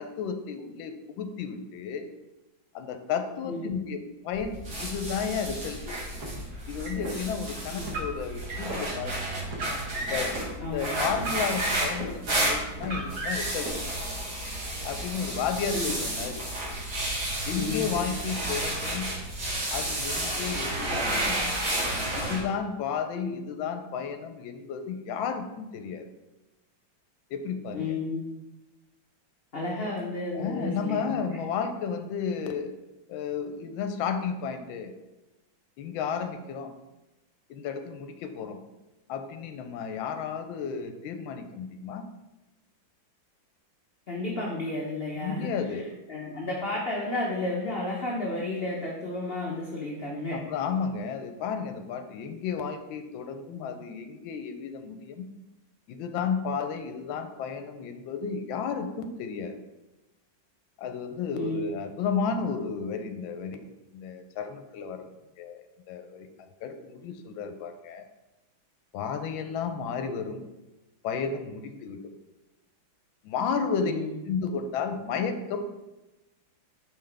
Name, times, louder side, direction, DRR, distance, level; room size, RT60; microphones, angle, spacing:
voice 1, 0.0-2.1 2.7-6.0 6.7-9.2 9.9-13.8 14.8-16.4 17.5-19.1 19.7-21.3 22.1-26.1 27.3-27.9 30.3-32.7 33.1-34.9 35.8-36.7 37.5-38.6 39.1-42.1 45.2-45.8 50.3-55.2 55.9-59.6 60.8-63.6 63.9-65.1 65.4-66.3 66.6-68.1 68.9-70.4 71.0-72.0 73.2-73.9 74.3-75.7, left 6 dB, 80° left, 7 dB, 1.3 m, -32 dB
voice 2, 3.4-3.8 7.7-7.8 10.6-11.2 15.7-15.9 17.5-18.0 23.2-23.4 27.7-28.2 29.5-31.4 44.1-45.5 46.1-50.4 53.5-53.7 61.3-61.7 73.8-74.1, left 2 dB, 60° left, -3 dB, 0.6 m, -32 dB
sound 1, 4.3-22.4, right 1 dB, 70° right, 2.5 m, -32 dB
Car, 6.1-7.1 7.8-8.8 9.4-10.4 11.1-12.2 12.8-13.7, right 1 dB, 55° right, 1.4 m, -36 dB
5.7 x 5.1 x 3.3 m, 1.0 s
omnidirectional pair, 2.2 m